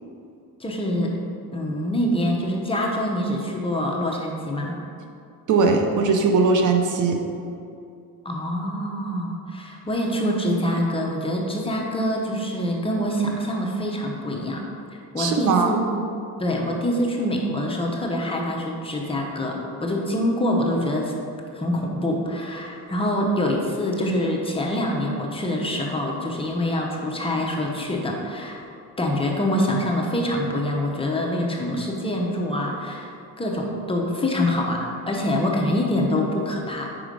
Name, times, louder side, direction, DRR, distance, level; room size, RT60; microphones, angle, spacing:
voice 1, 0.6-1.2 1.5-4.8 8.2-14.6 15.1-15.8 16.4-21.1 21.5-28.6 29.0-36.9, left 1 dB, 15° left, -1 dB, 0.7 m, -25 dB
voice 2, 5.5-7.2 15.2-15.7, right 4 dB, 55° right, 3 dB, 0.7 m, -19 dB
4.9 x 4.8 x 5.1 m, 2.6 s
cardioid pair, 125°, 38 cm